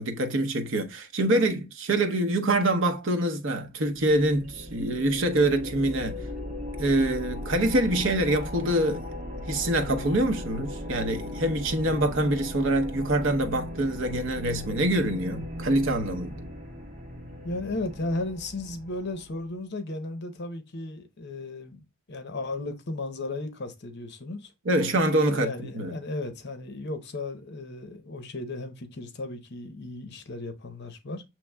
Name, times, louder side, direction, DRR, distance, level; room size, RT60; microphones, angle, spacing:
voice 1, 0.0-6.2 6.8-9.1 9.5-16.4 24.6-25.9, right 1 dB, 65° right, 0.8 m, -25 dB
sound 1, 4.0-19.4, left 1 dB, 45° right, 1.4 m, -38 dB
voice 2, 17.4-21.8 22.1-24.5 25.2-31.2, left 2 dB, 55° left, 0.8 m, -35 dB
6.9 x 3.0 x 2.2 m
head